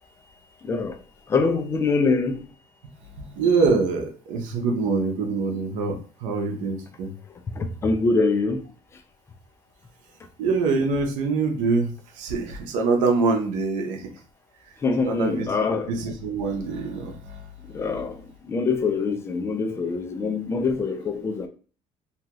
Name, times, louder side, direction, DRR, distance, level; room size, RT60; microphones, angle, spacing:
voice 1, 1.3-2.4 7.6-8.6 14.8-15.9 17.7-18.1 18.5-21.5, left 4 dB, 20° left, 0.3 m, -24 dB
voice 2, 3.2-7.1 10.4-11.9 12.2-14.1 15.0-15.5 15.9-17.4, right 4 dB, 80° right, 0.7 m, -24 dB
2.7 x 2.3 x 2.9 m
cardioid pair, 155°, 13 cm